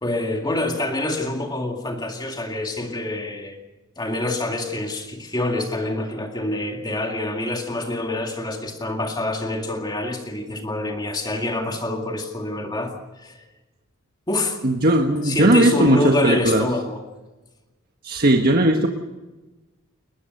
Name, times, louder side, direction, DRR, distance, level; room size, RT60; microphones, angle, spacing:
voice 1, 0.0-3.6 4.0-13.4 14.3-14.6 15.2-17.0, left 2 dB, 20° left, 3 dB, 2.2 m, -26 dB
voice 2, 14.6-16.7 18.0-18.9, right 1 dB, 45° right, 3 dB, 1.5 m, -17 dB
21.5 x 20.5 x 6.7 m, 1.1 s
head